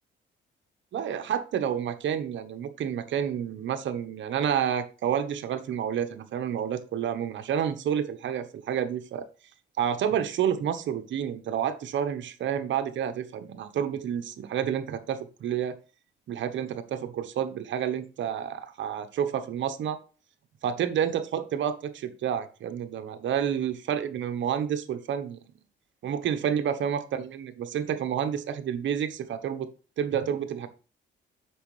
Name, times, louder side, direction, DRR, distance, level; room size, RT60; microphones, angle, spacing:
voice 1, 0.9-9.2 9.8-15.7 16.3-20.0 20.6-25.4 26.0-29.7 30.0-30.7, right 9 dB, 70° right, 10 dB, 1.3 m, -29 dB
8.1 x 6.4 x 3.3 m, 0.36 s
cardioid pair, 90°, 20 cm